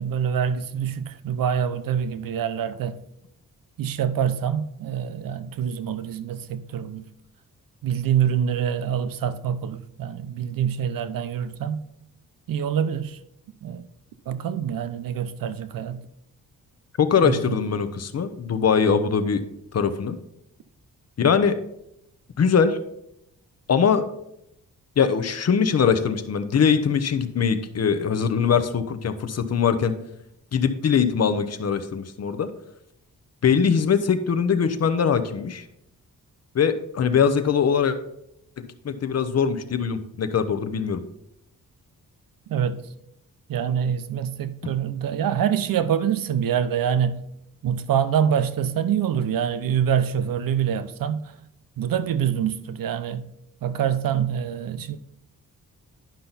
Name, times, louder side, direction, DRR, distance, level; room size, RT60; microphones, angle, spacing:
voice 1, 0.0-3.0 3.8-7.1 7.8-11.8 12.5-13.2 13.6-13.9 14.3-16.0 17.2-17.6 42.5-42.8 43.5-47.2 47.6-51.2 51.8-53.3 53.6-55.0, right 8 dB, 85° right, 0.7 m, -25 dB
voice 2, 17.0-19.4 19.7-20.2 21.2-21.6 22.4-22.8 23.7-24.1 25.0-29.9 30.5-32.5 33.4-35.6 36.5-38.0 38.6-41.0, left 6 dB, 50° left, 0.8 m, -22 dB
10.5 x 5.7 x 4.0 m
wide cardioid pair, 130°, 33 cm